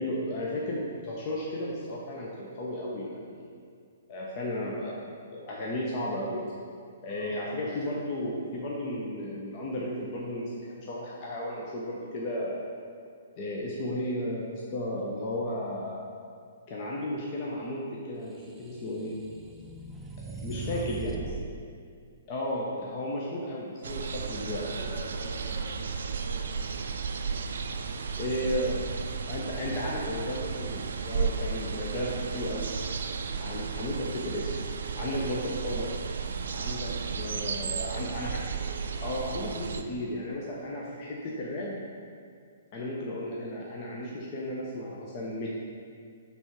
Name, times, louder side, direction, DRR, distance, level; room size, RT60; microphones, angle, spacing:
voice 1, 0.0-3.5 4.1-5.0 5.3-6.5 7.0-12.6 13.4-16.0 16.7-19.2 20.4-21.4 22.3-24.9 28.2-28.8 29.3-32.7 33.4-34.5 35.0-35.9 36.5-38.3 39.0-41.8 42.7-45.6, left 1 dB, 40° left, -4 dB, 0.9 m, -34 dB
voice 2, 7.1-7.5 20.2-21.3 24.3-27.3 37.7-38.4 40.7-40.9, left 1 dB, 70° left, -3 dB, 1.5 m, -47 dB
sound 1, 18.5-21.4, right 3 dB, 10° right, 0.5 m, -39 dB
sound 2, 23.8-39.8, right 5 dB, 65° right, 0.4 m, -34 dB
7.0 x 3.5 x 4.4 m, 2.2 s
figure-of-eight pair, 120°, 0 cm